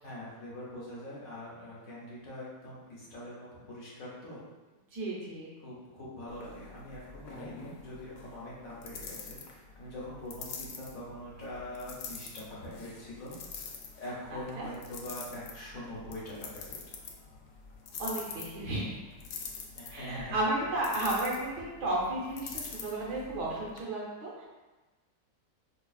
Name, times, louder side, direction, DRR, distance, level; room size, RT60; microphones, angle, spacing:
voice 1, 0.0-4.4 5.6-13.3 14.0-16.6 19.7-20.3, left 1 dB, 60° left, -7 dB, 1.2 m, -43 dB
voice 2, 4.9-5.5 14.3-14.7 18.0-18.9 19.9-24.5, right 1 dB, 75° right, -4 dB, 1.4 m, -33 dB
sound 1, 6.3-23.8, left 5 dB, 80° left, 1.2 m, -45 dB
5.2 x 2.3 x 2.3 m, 1.2 s
omnidirectional pair, 1.8 m